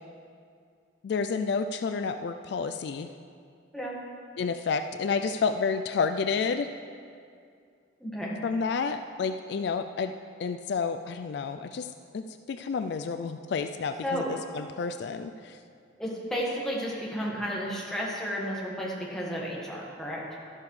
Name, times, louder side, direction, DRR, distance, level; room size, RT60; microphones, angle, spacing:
voice 1, 1.0-3.1 4.4-6.7 8.4-10.1 10.4-11.9 12.1-15.6, left 5 dB, 60° left, 8 dB, 0.3 m, -30 dB
voice 2, 8.0-8.4 14.0-14.3 16.0-20.2, equal, 5° left, -5 dB, 1.6 m, -32 dB
12.0 x 12.0 x 3.2 m, 2.3 s
head